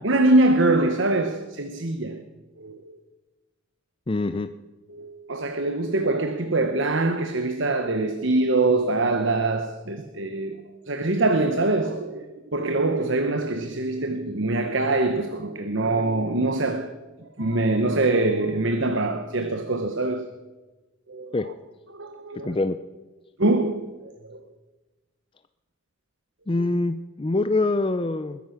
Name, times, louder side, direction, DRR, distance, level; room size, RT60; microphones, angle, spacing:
voice 1, 0.0-2.2 2.6-3.0 4.9-10.6 10.9-16.9 17.2-20.3 21.1-21.3 21.9-22.6 23.4-23.9 24.3-24.4 27.4-27.5, right 2 dB, 60° right, 1.1 m, -24 dB
voice 2, 4.1-4.5 21.3-21.5 22.4-22.8 26.5-28.4, left 2 dB, 25° left, 0.5 m, -24 dB
21.0 x 10.5 x 5.9 m
head